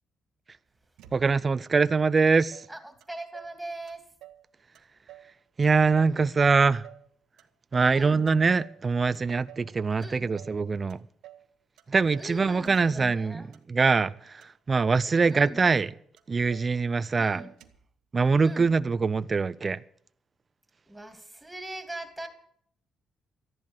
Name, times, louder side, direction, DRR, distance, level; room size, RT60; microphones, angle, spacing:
Motor vehicle (road), 1.0-1.6 2.2-2.3 2.5-3.6 3.9-4.5 4.7-5.3 5.6-7.1 7.4-8.0 8.3-8.8 9.1-9.7 10.0-10.6 10.9-11.5 11.8-12.4 12.6-13.2 13.5-14.1 14.4-15.0 15.3-15.4 15.6-15.9 16.2-16.7 17.0-17.1 17.4-17.9, right 13 dB, 90° right, 1.3 m, -51 dB
voice 1, 1.1-2.7 5.6-6.8 7.7-11.0 11.9-14.4 14.7-15.9 16.3-17.4 18.1-19.8, right 4 dB, 35° right, 0.5 m, -23 dB
voice 2, 2.7-4.1 7.9-8.3 10.0-10.3 12.2-13.5 15.3-15.6 17.2-17.5 18.4-18.7 20.9-22.3, right 1 dB, 5° right, 2.9 m, -41 dB
13.5 x 11.0 x 7.4 m
cardioid pair, 90°, 0 cm